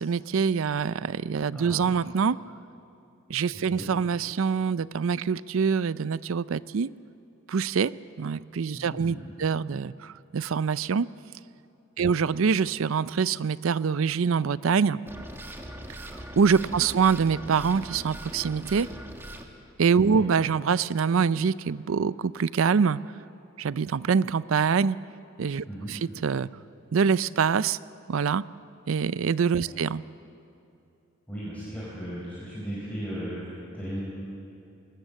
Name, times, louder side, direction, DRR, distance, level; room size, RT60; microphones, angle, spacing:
voice 1, 0.0-2.4 3.3-6.9 7.5-7.9 8.2-11.1 12.0-15.0 16.1-18.9 19.8-23.0 23.6-25.0 25.4-26.5 26.9-27.8 28.1-28.4 28.9-30.0, right 6 dB, 75° right, 18 dB, 0.5 m, -25 dB
voice 2, 8.7-9.3 12.0-12.2 16.7-16.8 20.1-20.3 25.7-25.9 29.6-29.8 31.3-34.0, equal, 5° left, -9 dB, 5.3 m, -37 dB
sound 1, 15.1-19.4, right 1 dB, 10° right, 1.6 m, -41 dB
21.0 x 20.0 x 7.5 m, 2.7 s
head